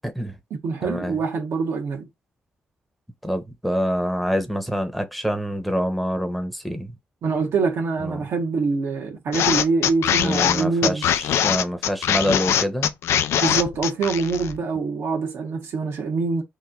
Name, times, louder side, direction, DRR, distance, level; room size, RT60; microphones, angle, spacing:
voice 1, 0.0-0.3 0.8-1.2 3.2-6.9 8.0-8.2 10.1-12.9, equal, ahead, 0.8 m, -26 dB
voice 2, 0.6-2.1 7.2-11.1 13.3-16.4, right 4 dB, 75° right, 1.0 m, -24 dB
sound 1, 9.3-14.6, left 10 dB, 80° left, 0.3 m, -22 dB
3.1 x 2.4 x 3.8 m
cardioid pair, 65°, 4 cm